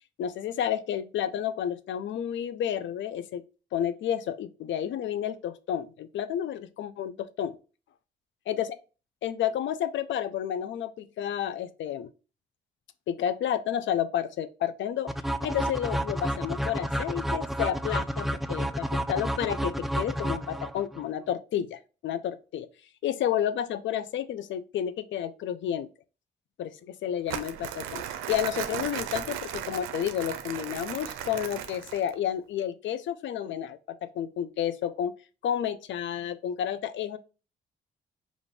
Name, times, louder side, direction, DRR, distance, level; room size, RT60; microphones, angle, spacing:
voice 1, 0.2-3.4 3.7-7.6 8.5-8.8 9.2-12.1 13.1-15.1 15.4-22.7 23.0-25.9 26.6-28.0 28.3-35.1 35.4-37.2, left 10 dB, 65° left, 0.5 m, -31 dB
sound 1, 15.1-21.0, equal, ahead, 0.3 m, -30 dB
Crumpling crinkling, 27.3-32.1, right 10 dB, 80° right, 0.5 m, -36 dB
5.1 x 2.5 x 3.1 m
supercardioid pair, 50°, 21 cm